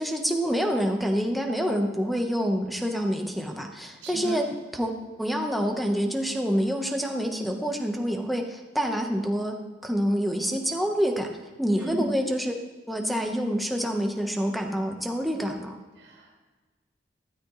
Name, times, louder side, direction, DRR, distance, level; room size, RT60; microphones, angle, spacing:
voice 1, 0.0-4.5 4.7-9.6 9.8-11.3 11.6-12.6 12.9-15.8, equal, ahead, 2 dB, 1.1 m, -27 dB
voice 2, 4.0-4.4 11.8-12.1 16.0-16.4, equal, 65° right, -1 dB, 2.5 m, -35 dB
13.0 x 13.0 x 3.2 m, 1.3 s
head